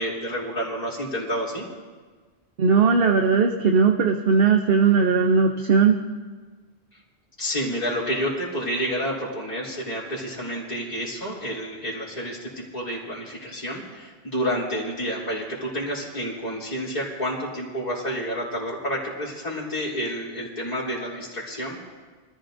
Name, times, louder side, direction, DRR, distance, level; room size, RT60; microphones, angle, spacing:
voice 1, 0.0-1.6 7.4-21.9, equal, 35° left, -7 dB, 3.3 m, -29 dB
voice 2, 2.6-6.0, right 5 dB, 60° right, 4 dB, 0.9 m, -18 dB
23.5 x 14.0 x 2.6 m, 1.4 s
omnidirectional pair, 1.2 m